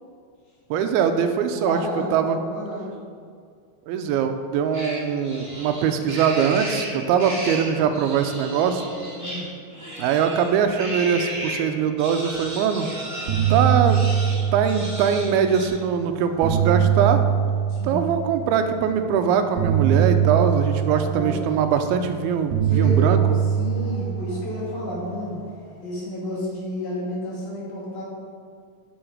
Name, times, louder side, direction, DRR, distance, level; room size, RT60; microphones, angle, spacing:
voice 1, 0.7-1.8 2.1-2.4 3.9-8.8 10.0-12.9 13.5-14.0 14.5-17.2 17.8-23.2, right 7 dB, 90° right, 7 dB, 2.5 m, -22 dB
voice 2, 1.5-2.9 9.2-9.5 17.7-18.1 21.1-21.4 22.6-25.4 25.8-28.0, left 1 dB, 55° left, -8 dB, 3.8 m, -31 dB
sound 1, 4.7-11.6 12.0-15.7, right 1 dB, 10° right, 1.1 m, -34 dB
sound 2, 12.6-12.9 13.1-15.4 16.1-18.5 19.6-22.0 22.5-25.1, right 9 dB, 70° right, 1.8 m, -22 dB
9.0 x 7.2 x 5.0 m, 2.1 s
omnidirectional pair, 4.4 m